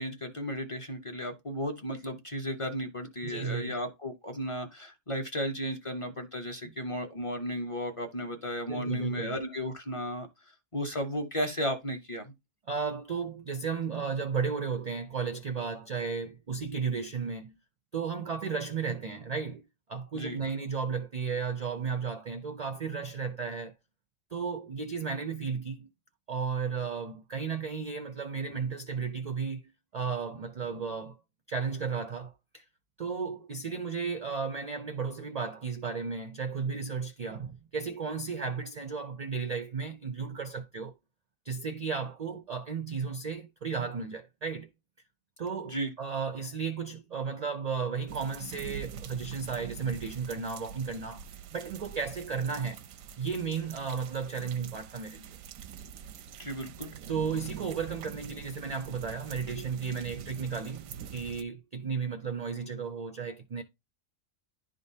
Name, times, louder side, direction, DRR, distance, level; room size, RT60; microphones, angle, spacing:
voice 1, 0.0-12.3 20.1-20.4 45.7-45.9 56.4-56.9, equal, 30° left, 0.7 m, -34 dB
voice 2, 3.2-3.7 8.7-9.4 12.7-17.6 17.9-19.6 19.9-23.7 24.3-25.9 26.3-31.2 31.5-32.6 33.0-40.9 41.4-44.7 45.4-51.2 51.5-52.8 53.2-55.4 57.1-63.6, right 5 dB, 60° right, 0.4 m, -34 dB
sound 1, 48.1-61.4, right 9 dB, 85° right, 1.0 m, -45 dB
11.0 x 3.7 x 2.7 m
omnidirectional pair, 1.4 m